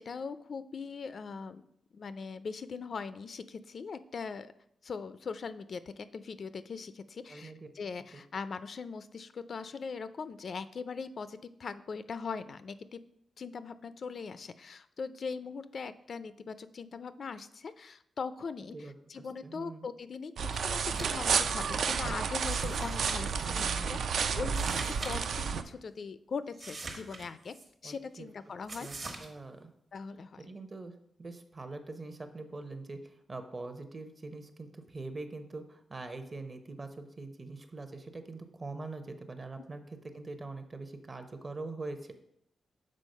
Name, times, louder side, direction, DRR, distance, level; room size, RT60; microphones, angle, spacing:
voice 1, 0.0-1.6 1.9-4.5 4.8-13.0 13.4-24.0 24.3-27.6 27.8-28.9 29.9-30.5, left 5 dB, 55° left, 13 dB, 0.3 m, -41 dB
voice 2, 7.3-7.7 8.1-8.2 18.7-19.9 22.9-24.1 27.8-28.3 28.8-29.7 30.4-42.1, right 3 dB, 30° right, 9 dB, 0.7 m, -44 dB
sound 1, 20.4-25.6, right 6 dB, 75° right, 0.4 m, -31 dB
sound 2, 20.8-21.3 21.6-21.7 22.4-23.4 24.4-25.2 25.4-25.5 26.5-27.6 28.7-29.3, right 3 dB, 50° right, 1.2 m, -43 dB
6.3 x 4.3 x 5.3 m, 0.74 s
wide cardioid pair, 110°, 0 cm